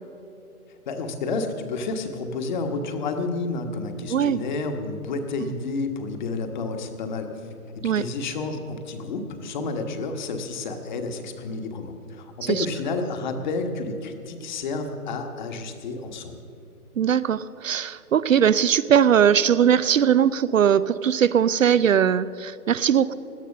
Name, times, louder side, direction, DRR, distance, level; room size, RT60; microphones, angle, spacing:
voice 1, 0.9-7.5 7.7-16.3, left 3 dB, 30° left, 6 dB, 1.3 m, -30 dB
voice 2, 4.1-4.4 7.8-8.0 12.4-12.7 17.0-23.1, right 8 dB, 60° right, 17 dB, 0.5 m, -20 dB
17.0 x 11.5 x 6.5 m, 2.6 s
hypercardioid pair, 150°, 45 cm